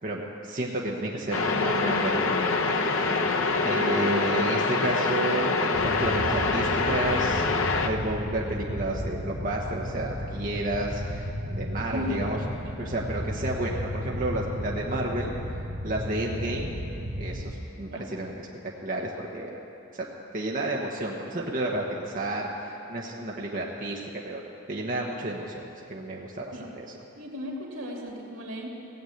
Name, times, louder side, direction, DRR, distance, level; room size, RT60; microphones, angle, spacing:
voice 1, 0.0-2.8 3.6-7.5 7.8-12.4 12.8-15.3 15.8-16.7 17.2-18.5 18.8-19.6 19.9-20.1 20.3-24.4 24.7-26.9, right 1 dB, 40° right, -2 dB, 1.1 m, -31 dB
sound 1, 1.3-7.9, left 3 dB, 75° left, 0.8 m, -25 dB
sound 2, 5.7-17.5, equal, 60° right, 1.7 m, -34 dB
voice 2, 11.9-12.5 17.9-18.1 26.5-26.7 27.2-28.7, left 1 dB, 85° right, -1 dB, 2.7 m, -35 dB
17.0 x 8.2 x 8.0 m, 2.9 s
head